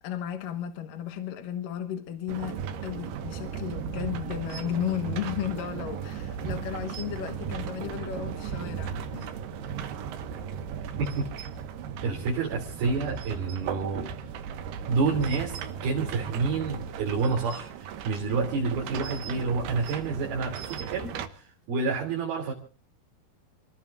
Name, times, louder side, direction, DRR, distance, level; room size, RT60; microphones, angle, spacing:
voice 1, 0.0-9.3, left 10 dB, 65° left, 2.7 m, -34 dB
sound 1, 2.3-21.3, right 7 dB, 90° right, 3.3 m, -36 dB
voice 2, 12.0-14.1 14.9-22.5, right 4 dB, 70° right, 4.7 m, -29 dB
29.0 x 18.5 x 2.5 m
omnidirectional pair, 4.5 m